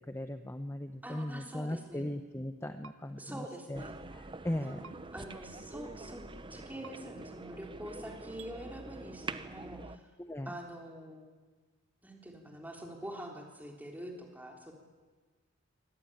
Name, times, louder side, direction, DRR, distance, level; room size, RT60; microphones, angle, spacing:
voice 1, 0.1-3.8 4.1-4.8 10.2-10.5, left 1 dB, 15° left, 8 dB, 0.8 m, -38 dB
voice 2, 1.0-2.0 3.2-4.0 4.6-4.9 5.1-6.2 6.5-10.0 10.5-11.3 12.0-14.7, right 1 dB, 10° right, 1 dB, 3.7 m, -45 dB
sound 1, 2.8-3.0 4.8-5.0 6.8-6.9 8.4-8.5, right 5 dB, 70° right, 1.2 m, -50 dB
sound 2, 3.7-10.0, right 3 dB, 25° right, 0.9 m, -45 dB
25.0 x 19.0 x 9.1 m, 1.4 s
head